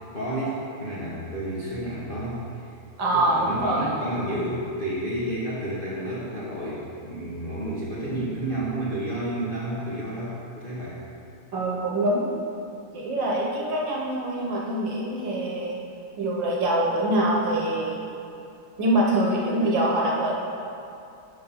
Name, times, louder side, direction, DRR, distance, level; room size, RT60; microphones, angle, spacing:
voice 1, 0.1-2.7 3.1-11.0, right 1 dB, 40° left, -8 dB, 0.8 m, -31 dB
voice 2, 3.0-4.0 11.5-12.3 12.9-15.8 16.2-18.0 18.8-20.3, right 1 dB, 60° right, -3 dB, 1.6 m, -24 dB
6.7 x 5.5 x 5.6 m, 2.6 s
omnidirectional pair, 2.4 m